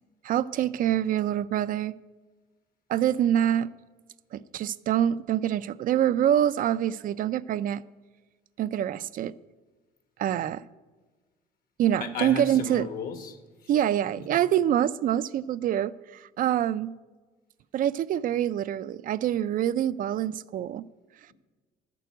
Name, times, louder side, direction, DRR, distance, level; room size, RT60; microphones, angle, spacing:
voice 1, 0.2-1.9 2.9-3.7 4.3-7.8 8.6-9.3 10.2-10.6 11.8-12.9 13.7-16.9 17.7-20.9, right 11 dB, 55° right, 0.4 m, -25 dB
voice 2, 12.0-13.7 14.2-14.3, left 5 dB, 60° left, 1.7 m, -35 dB
12.0 x 6.9 x 9.0 m
cardioid pair, 110°, 17 cm